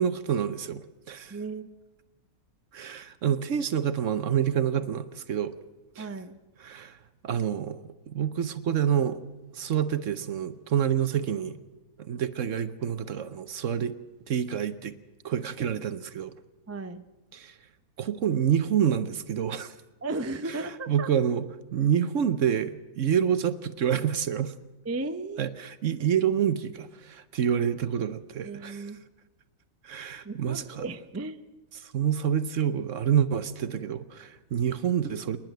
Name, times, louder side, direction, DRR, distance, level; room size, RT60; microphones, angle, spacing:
voice 1, 0.0-1.4 2.7-5.5 6.0-6.1 6.6-7.0 7.2-7.8 8.1-9.2 9.5-11.6 12.1-13.9 14.3-14.9 15.2-16.3 17.3-17.5 18.0-19.7 20.5-20.6 20.9-21.5 21.7-24.5 25.4-28.9 29.8-30.8 31.8-35.4, right 9 dB, 60° right, 12 dB, 1.0 m, -27 dB
voice 2, 1.3-1.7 6.0-6.4 16.7-17.1 20.0-21.1 24.8-25.4 28.4-29.0 30.2-31.4, right 3 dB, 20° right, 9 dB, 0.4 m, -35 dB
27.0 x 10.5 x 9.1 m, 1.1 s
omnidirectional pair, 1.7 m